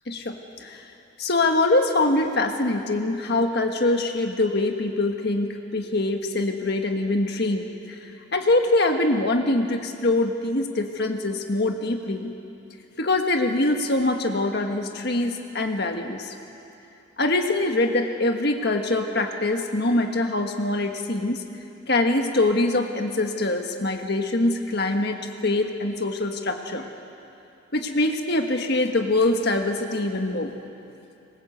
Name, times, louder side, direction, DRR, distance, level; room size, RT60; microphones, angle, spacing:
voice 1, 0.1-0.8 1.2-8.0 8.3-12.3 13.0-16.3 17.2-21.4 21.9-26.9 27.7-30.5, left 2 dB, 55° left, 4 dB, 1.5 m, -24 dB
26.0 x 21.5 x 8.0 m, 2.7 s
head